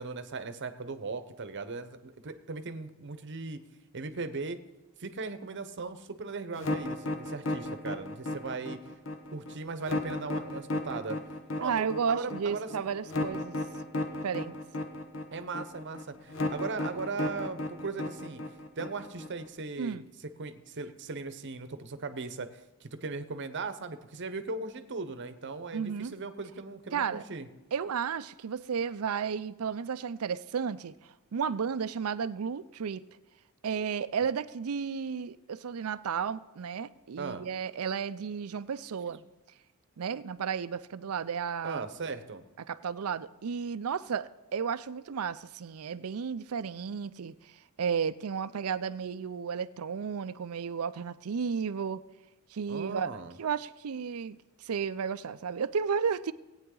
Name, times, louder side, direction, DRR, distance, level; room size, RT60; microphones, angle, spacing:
voice 1, 0.0-3.6 3.9-4.6 5.0-8.8 9.3-11.2 11.6-12.9 15.3-18.4 18.8-20.0 20.4-27.5 37.2-37.4 39.1-39.2 41.6-42.4 52.7-53.4, right 4 dB, 55° right, 10 dB, 0.9 m, -38 dB
sound 1, 6.6-19.5, left 2 dB, 60° left, 1.1 m, -34 dB
voice 2, 11.6-13.6 14.2-14.6 19.8-20.0 25.7-26.1 26.9-27.2 27.7-33.0 33.6-39.2 40.0-41.8 42.6-47.5 47.8-52.0 52.5-53.1 53.4-56.3, right 6 dB, 70° right, 15 dB, 0.5 m, -33 dB
18.5 x 9.0 x 3.9 m, 1.0 s
head